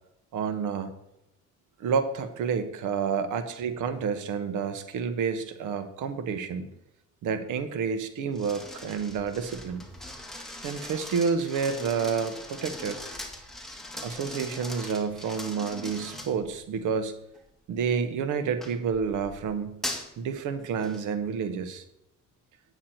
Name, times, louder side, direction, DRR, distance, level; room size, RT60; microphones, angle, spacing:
voice 1, 0.3-0.9 1.8-6.7 7.2-9.9 10.6-13.0 14.0-17.1 17.7-19.8 20.2-21.8, right 6 dB, 85° right, 9 dB, 1.3 m, -29 dB
sound 1, 8.3-16.8 17.4-17.7 18.6-20.2 20.8-21.0, left 1 dB, ahead, 2.1 m, -40 dB
9.7 x 9.2 x 4.4 m, 0.84 s
cardioid pair, 90°, 30 cm